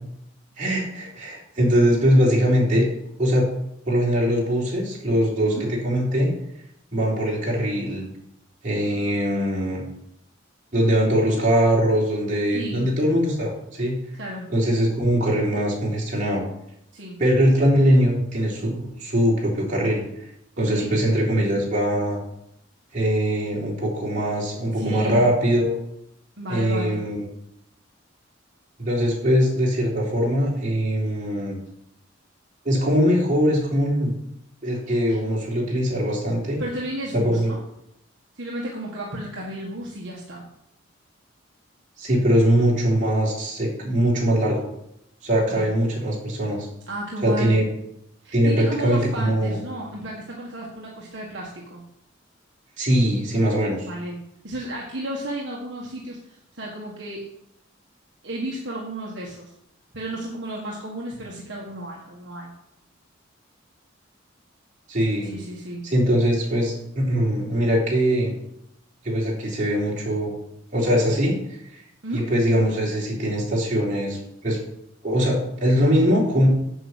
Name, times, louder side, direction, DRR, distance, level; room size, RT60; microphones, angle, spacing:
voice 1, 0.6-2.9 3.2-3.5 3.9-6.3 6.9-8.1 8.6-9.9 10.7-14.0 14.5-16.4 17.2-20.0 20.6-22.2 22.9-25.8 26.5-27.3 28.8-31.6 32.6-34.1 34.6-36.6 37.1-37.5 42.0-44.6 45.2-46.7 47.2-47.7 48.3-49.6 52.8-53.9 64.9-65.4 65.8-68.3 69.0-70.3 70.7-71.4 71.7-71.8 72.1-74.6 75.0-76.5, equal, 40° right, -4 dB, 3.7 m, -21 dB
voice 2, 12.5-12.9 14.1-14.5 16.9-17.2 20.6-20.9 24.7-25.3 26.4-27.0 35.1-35.2 36.6-37.6 38.3-40.5 45.5-45.7 46.9-47.6 48.2-51.9 53.9-57.3 58.2-59.5 59.9-62.5 65.2-65.9 72.0-72.3, right 1 dB, 60° right, -2 dB, 1.7 m, -33 dB
7.9 x 7.7 x 7.4 m, 0.79 s
head